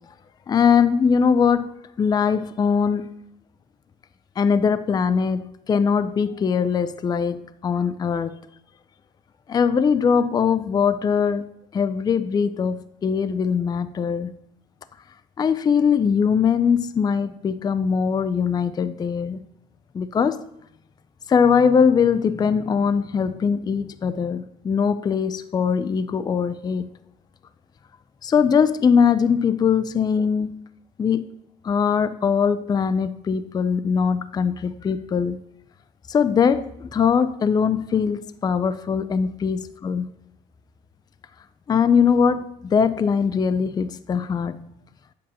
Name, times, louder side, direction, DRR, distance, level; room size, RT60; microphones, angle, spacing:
voice 1, 0.5-1.7 2.0-3.1 4.4-8.4 9.5-11.5 11.7-14.3 15.4-19.4 19.9-20.4 21.3-26.9 28.2-30.6 31.0-31.2 31.6-35.4 36.1-40.1 41.7-44.6, left 6 dB, 25° left, 0.4 m, -21 dB
8.4 x 7.6 x 2.8 m
cardioid pair, 110°, 17 cm